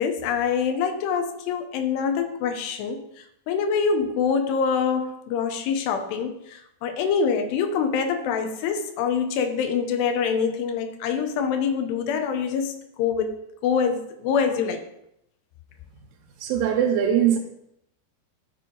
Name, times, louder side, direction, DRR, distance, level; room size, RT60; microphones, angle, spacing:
voice 1, 0.0-3.0 3.5-13.3 13.6-14.8, left 6 dB, 90° left, 6 dB, 3.0 m, -25 dB
voice 2, 16.4-17.4, right 9 dB, 85° right, 2 dB, 3.0 m, -21 dB
12.5 x 4.6 x 3.8 m, 0.78 s
omnidirectional pair, 4.7 m